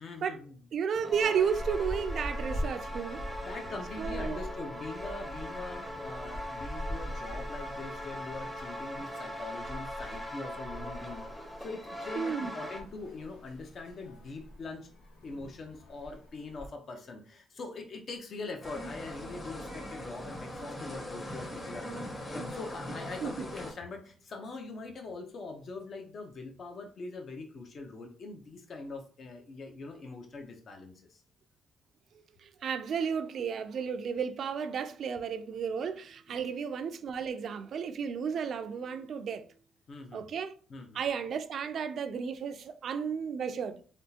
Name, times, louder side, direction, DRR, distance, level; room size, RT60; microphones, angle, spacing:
voice 1, 0.0-0.6 3.4-14.9 15.2-31.2 36.3-36.5 39.9-40.2 40.7-41.0, left 3 dB, 55° left, 0.7 m, -43 dB
voice 2, 0.7-3.2 4.0-4.4 12.1-12.5 23.2-23.4 32.4-39.4 40.1-40.5 40.9-43.8, right 7 dB, 60° right, 0.3 m, -33 dB
sound 1, 0.9-12.8, equal, 5° left, 0.7 m, -41 dB
sound 2, 1.1-16.7, equal, 90° left, 1.0 m, -43 dB
sound 3, 18.6-23.7, equal, 30° left, 1.2 m, -40 dB
3.5 x 2.4 x 2.8 m
cardioid pair, 90°, 0 cm